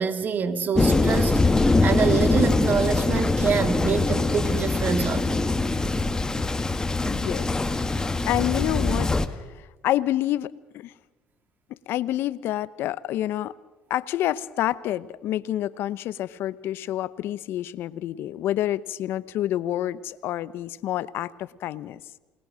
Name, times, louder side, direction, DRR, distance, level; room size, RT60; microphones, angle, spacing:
voice 1, 0.0-5.4, right 6 dB, 50° right, 10 dB, 2.0 m, -26 dB
Thunder, 0.7-9.3, left 3 dB, 15° left, 1.8 m, -23 dB
voice 2, 7.1-7.9 8.2-10.9 11.9-13.5 13.9-22.0, left 13 dB, 70° left, 18 dB, 0.8 m, -28 dB
28.5 x 20.0 x 6.4 m, 1.1 s
supercardioid pair, 75°, 4 cm